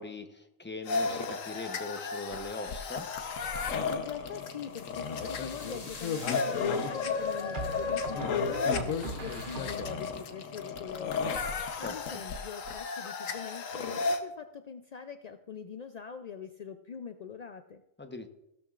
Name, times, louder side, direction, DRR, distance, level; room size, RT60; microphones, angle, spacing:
voice 1, 0.0-3.1 11.8-12.0 18.0-18.3, left 3 dB, 10° left, 6 dB, 0.7 m, -40 dB
sound 1, 0.9-14.2, left 5 dB, 90° left, 1.3 m, -33 dB
voice 2, 3.9-17.8, left 7 dB, 70° left, 8 dB, 0.3 m, -43 dB
sound 2, 4.4-8.9, left 2 dB, 30° left, 1.3 m, -51 dB
sound 3, 4.9-5.4 7.5-10.2, right 3 dB, 45° right, 1.0 m, -41 dB
16.0 x 12.5 x 2.5 m, 0.85 s
omnidirectional pair, 1.3 m